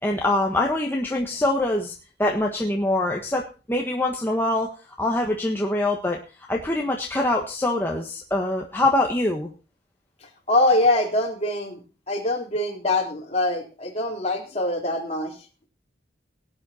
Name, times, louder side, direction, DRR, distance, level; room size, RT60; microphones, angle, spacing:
voice 1, 0.0-1.9 2.2-4.7 5.0-6.2 6.5-9.5, left 1 dB, 10° left, 0 dB, 1.4 m, -24 dB
voice 2, 10.5-11.8 12.1-15.4, left 1 dB, 35° left, 0 dB, 3.7 m, -23 dB
18.0 x 9.5 x 4.3 m, 0.35 s
head